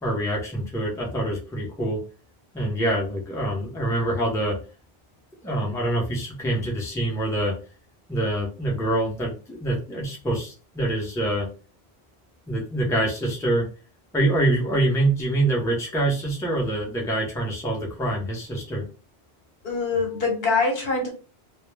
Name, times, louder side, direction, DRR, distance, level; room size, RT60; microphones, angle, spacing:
voice 1, 0.0-2.0 2.5-4.6 5.4-7.5 8.1-11.5 12.5-13.7 14.1-18.9, right 1 dB, 5° left, -2 dB, 0.6 m, -25 dB
voice 2, 19.6-21.1, left 4 dB, 70° left, 1 dB, 1.0 m, -24 dB
2.2 x 2.1 x 3.2 m, 0.35 s
omnidirectional pair, 1.1 m